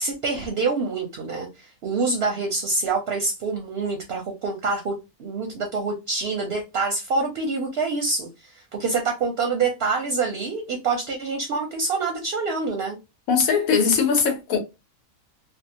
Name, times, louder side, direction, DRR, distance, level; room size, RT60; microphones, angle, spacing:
voice 1, 0.0-4.9 5.2-13.0, right 4 dB, 60° right, 0.7 m, -26 dB
voice 2, 13.3-14.6, left 6 dB, 75° left, 1.1 m, -20 dB
2.7 x 2.1 x 2.7 m
omnidirectional pair, 1.5 m